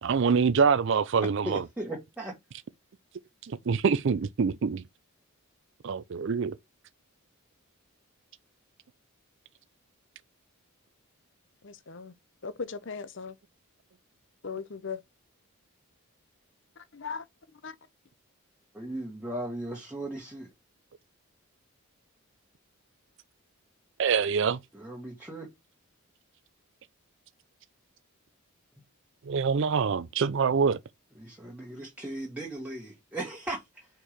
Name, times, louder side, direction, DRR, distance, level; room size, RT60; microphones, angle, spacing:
voice 1, 0.0-1.6 3.5-4.8 5.8-6.6 24.0-24.6 29.3-30.8, right 5 dB, 55° right, 0.4 m, -25 dB
voice 2, 1.4-2.3 18.7-20.5 24.7-25.5 31.2-33.9, right 1 dB, 5° right, 1.5 m, -37 dB
voice 3, 11.6-12.1 12.4-13.4 14.4-15.0 16.8-17.3 17.6-17.8, left 5 dB, 55° left, 0.7 m, -38 dB
4.6 x 4.5 x 5.0 m
head